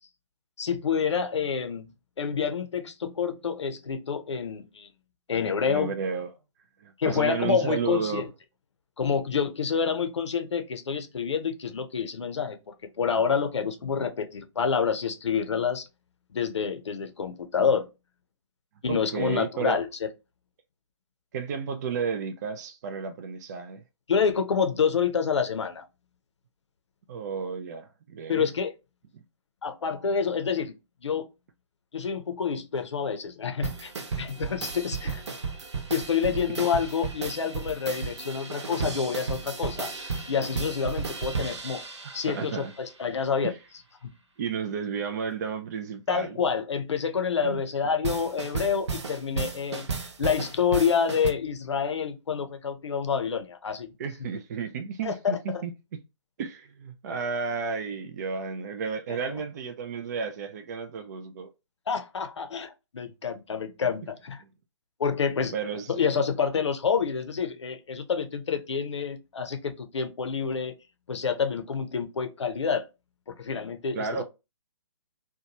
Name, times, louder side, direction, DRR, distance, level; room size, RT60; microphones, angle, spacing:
voice 1, 0.6-1.9 2.2-4.9 5.3-5.9 7.0-8.3 9.0-12.6 13.0-15.8 16.3-17.9 18.8-19.9 24.1-25.8 28.3-28.7 29.6-30.7 31.0-31.2 31.9-33.9 34.2-35.2 35.9-41.8 42.1-43.5 46.1-49.9 50.2-53.9 55.0-55.6 59.1-59.2 61.9-64.4 65.0-65.5 65.9-70.7 71.1-72.8 73.3-74.2, left 6 dB, 70° left, 0.6 m, -28 dB
voice 2, 5.6-6.3 6.8-8.2 18.9-19.8 21.3-23.8 27.1-28.5 29.1-29.2 42.0-42.7 43.4-43.5 44.4-46.4 47.4-47.6 54.0-55.7 56.4-61.5 64.4-64.5 65.5-66.1 73.9-74.2, right 5 dB, 35° right, 0.3 m, -32 dB
sound 1, 33.6-42.8 48.0-51.3, right 4 dB, 70° right, 0.7 m, -34 dB
2.8 x 2.2 x 2.8 m
figure-of-eight pair, 135°, 15 cm